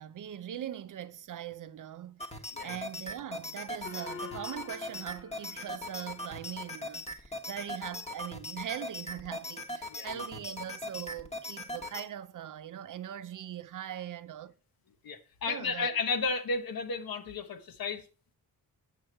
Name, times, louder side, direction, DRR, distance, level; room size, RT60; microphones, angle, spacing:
voice 1, 0.0-14.5 15.4-16.0, right 10 dB, 55° right, 0.6 m, -41 dB
sound 1, 2.2-12.0, left 1 dB, 15° left, 1.1 m, -40 dB
Gong, 3.8-6.7, left 6 dB, 35° left, 0.8 m, -48 dB
voice 2, 9.9-10.2 15.0-18.0, left 4 dB, 65° left, 1.1 m, -33 dB
8.1 x 6.4 x 4.4 m
wide cardioid pair, 115°, 38 cm